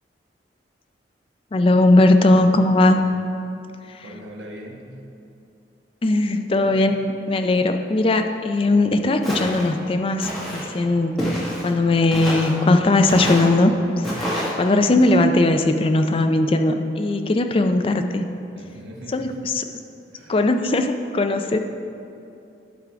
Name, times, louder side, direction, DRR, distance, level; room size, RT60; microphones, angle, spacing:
voice 1, 1.5-3.0 3.9-4.0 6.0-7.0 7.3-18.3 19.1-19.6 20.3-21.6, left 2 dB, 30° left, 7 dB, 0.4 m, -19 dB
voice 2, 4.0-4.9 6.6-6.8 18.5-19.1 20.1-20.4, right 1 dB, 85° right, -1 dB, 1.0 m, -40 dB
Walk footsteps, 9.2-9.7 10.2-10.6 11.2-11.7 12.1-12.5 13.1-13.5 14.0-14.5, equal, ahead, 1.6 m, -27 dB
11.5 x 3.8 x 4.6 m, 2.7 s
head